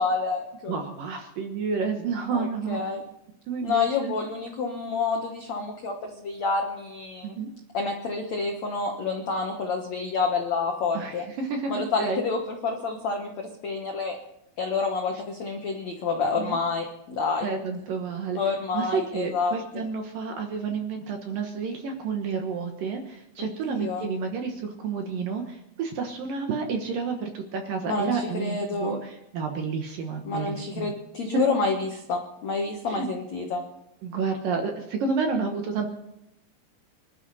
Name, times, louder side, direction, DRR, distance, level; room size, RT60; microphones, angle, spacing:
voice 1, 0.0-0.7 2.3-3.0 3.6-7.3 7.7-11.2 11.7-14.2 14.6-17.5 18.4-19.5 23.7-24.1 27.9-29.0 30.2-33.6, left 4 dB, 80° left, 2 dB, 1.5 m, -28 dB
voice 2, 0.7-2.8 3.5-4.1 7.2-7.5 10.9-12.2 16.4-16.6 17.4-18.4 18.7-30.9 31.3-31.4 32.9-33.1 34.0-35.9, right 5 dB, 65° right, 4 dB, 2.3 m, -30 dB
25.0 x 12.5 x 4.2 m, 0.83 s
omnidirectional pair, 5.3 m